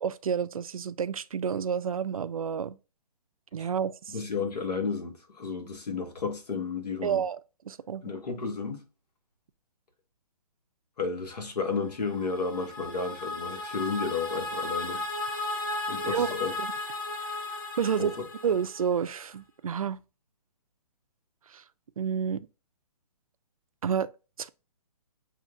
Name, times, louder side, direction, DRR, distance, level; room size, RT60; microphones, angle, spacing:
voice 1, 0.0-2.8 3.5-4.1 7.0-7.4 7.7-8.0 16.1-16.3 16.6-16.7 17.8-18.1 18.4-20.0 21.5-21.6 22.0-22.5 23.8-24.1 24.4-24.5, right 7 dB, 60° right, 0.4 m, -29 dB
voice 2, 4.1-7.2 8.0-8.8 11.0-15.0 15.9-16.5 18.0-18.1, left 4 dB, 90° left, 1.7 m, -32 dB
sound 1, 12.0-19.1, left 2 dB, 35° left, 0.8 m, -35 dB
7.5 x 2.8 x 2.5 m
hypercardioid pair, 180°, 20 cm